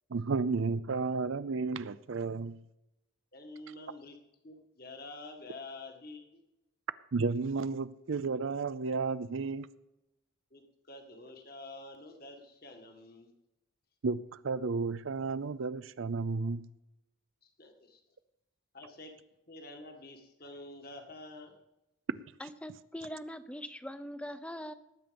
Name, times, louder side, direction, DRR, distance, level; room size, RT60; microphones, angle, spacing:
voice 1, 0.1-2.6 7.1-9.7 14.0-16.7, right 4 dB, 70° right, 15 dB, 0.5 m, -32 dB
voice 2, 3.3-4.2 4.4-6.4 10.5-13.3 17.4-18.0 18.7-19.2 19.5-21.6, left 2 dB, 45° left, 4 dB, 1.8 m, -48 dB
voice 3, 22.4-24.7, equal, 5° left, 12 dB, 0.6 m, -42 dB
19.0 x 8.8 x 5.3 m, 0.93 s
head